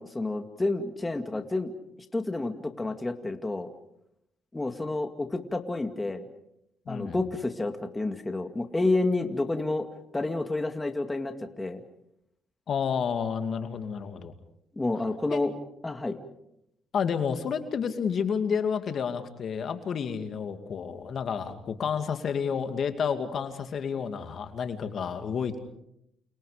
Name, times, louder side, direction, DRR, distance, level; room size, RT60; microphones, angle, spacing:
voice 1, 0.0-1.7 2.1-3.7 4.5-6.2 6.9-9.9 10.1-11.8 14.8-15.5 15.8-16.1, left 2 dB, 15° left, 6 dB, 2.2 m, -29 dB
voice 2, 6.9-7.2 12.7-14.3 15.3-15.4 16.9-25.6, left 6 dB, 60° left, 7 dB, 2.4 m, -30 dB
29.5 x 29.5 x 5.1 m, 0.80 s
cardioid pair, 90°, 0 cm